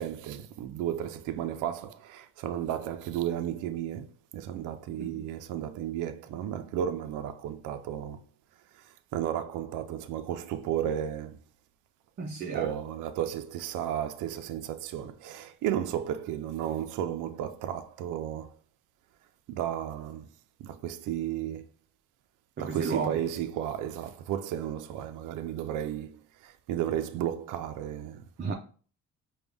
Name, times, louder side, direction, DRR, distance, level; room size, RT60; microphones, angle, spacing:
voice 1, 0.0-8.2 8.7-11.4 12.5-18.6 19.5-20.3 20.6-21.7 22.6-28.2, right 10 dB, 90° right, 0.5 m, -33 dB
voice 2, 12.2-12.7 22.6-23.2 28.4-28.5, right 4 dB, 35° right, 0.6 m, -33 dB
5.1 x 2.3 x 3.3 m
cardioid pair, 90°, 30 cm